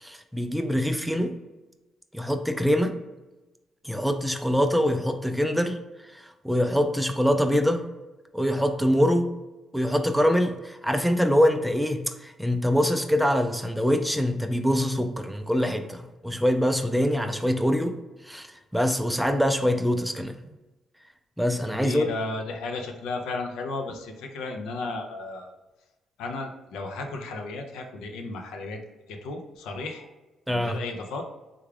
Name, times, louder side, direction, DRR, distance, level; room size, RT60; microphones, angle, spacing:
voice 1, 0.0-1.3 2.1-3.0 3.8-5.8 6.1-7.9 8.3-9.3 9.7-18.0 18.2-18.5 18.7-20.3 21.4-22.1 30.5-30.8, equal, ahead, 6 dB, 0.3 m, -24 dB
voice 2, 21.7-25.5 26.2-28.8 29.1-30.1 30.5-31.2, left 3 dB, 90° left, 3 dB, 0.5 m, -34 dB
3.5 x 2.3 x 3.2 m, 1.1 s
cardioid pair, 90°, 0 cm